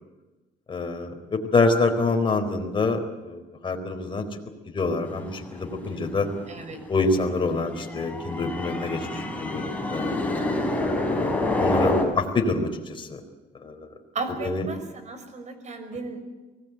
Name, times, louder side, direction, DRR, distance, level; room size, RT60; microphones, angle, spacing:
voice 1, 0.7-4.3 4.7-6.3 6.9-10.1 11.1-13.2 13.6-13.7 14.4-14.6, left 3 dB, 30° left, 3 dB, 4.2 m, -26 dB
sound 1, 5.1-12.1, left 2 dB, 10° left, 5.8 m, -28 dB
voice 2, 6.5-6.8 14.1-16.3, right 3 dB, 45° right, 9 dB, 5.8 m, -35 dB
24.5 x 18.5 x 9.4 m, 1.2 s
cardioid pair, 110°, 17 cm